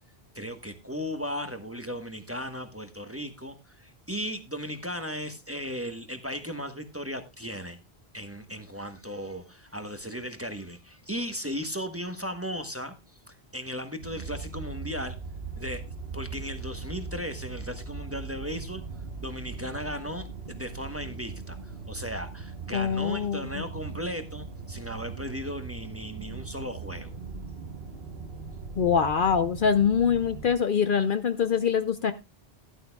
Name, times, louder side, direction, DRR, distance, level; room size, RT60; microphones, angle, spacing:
voice 1, 0.3-7.8 8.1-12.9 13.3-15.2 15.6-15.8 16.1-18.8 19.2-27.1, equal, 15° right, 7 dB, 1.0 m, -36 dB
sound 1, 14.0-30.5, right 4 dB, 70° right, 1.2 m, -40 dB
voice 2, 22.7-23.6 28.8-32.1, left 7 dB, 55° left, 10 dB, 0.8 m, -24 dB
13.5 x 11.0 x 2.3 m, 0.23 s
omnidirectional pair, 1.1 m